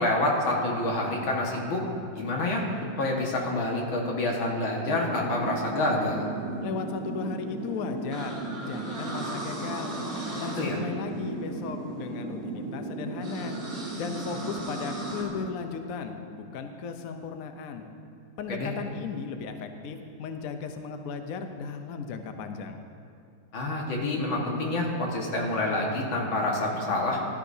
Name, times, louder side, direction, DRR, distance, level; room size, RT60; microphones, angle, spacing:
voice 1, 0.0-1.8 2.2-2.6 3.0-6.3 10.6-10.8 18.5-18.7 23.5-27.2, left 2 dB, 90° left, -2 dB, 2.4 m, -27 dB
FX - ronquidos, 5.0-15.2, right 2 dB, 50° right, 3.8 m, -35 dB
voice 2, 6.6-10.0 10.4-13.6 14.0-17.9 18.4-22.8, left 5 dB, 60° left, 6 dB, 1.0 m, -36 dB
16.5 x 12.0 x 2.7 m, 2.5 s
omnidirectional pair, 2.1 m